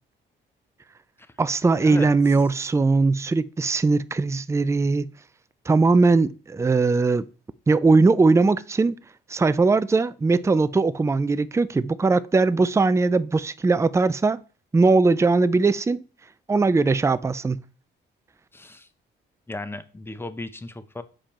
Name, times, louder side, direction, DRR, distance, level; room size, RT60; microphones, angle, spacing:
voice 1, 1.4-5.1 5.7-7.3 7.7-9.0 9.3-14.4 14.7-16.0 16.5-17.6, right 3 dB, 15° right, 0.4 m, -20 dB
voice 2, 18.5-18.9 19.5-21.0, left 2 dB, 10° left, 0.8 m, -36 dB
7.5 x 5.1 x 4.3 m
cardioid pair, 90°, 20 cm